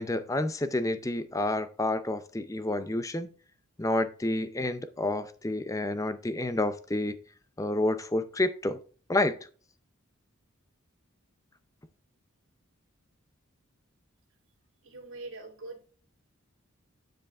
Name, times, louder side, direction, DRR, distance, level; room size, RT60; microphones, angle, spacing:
voice 1, 0.0-3.3 3.8-7.1 7.6-8.8 9.1-9.4, left 1 dB, 15° left, 0.5 m, -29 dB
voice 2, 14.8-15.9, right 2 dB, 65° right, 2.4 m, -43 dB
9.6 x 5.1 x 3.4 m
head